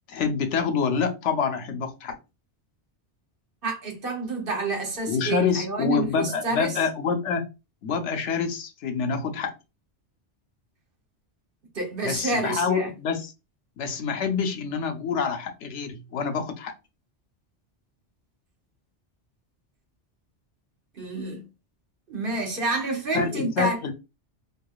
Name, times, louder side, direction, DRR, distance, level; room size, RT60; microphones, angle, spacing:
voice 1, 0.1-2.2 5.1-7.4 7.8-9.5 12.0-13.3 13.8-16.7 23.1-23.9, left 6 dB, 80° left, 1.0 m, -26 dB
voice 2, 3.6-6.8 11.7-12.9 21.0-21.4 22.1-23.8, right 3 dB, 55° right, 1.1 m, -28 dB
4.8 x 2.6 x 2.3 m
omnidirectional pair, 1.2 m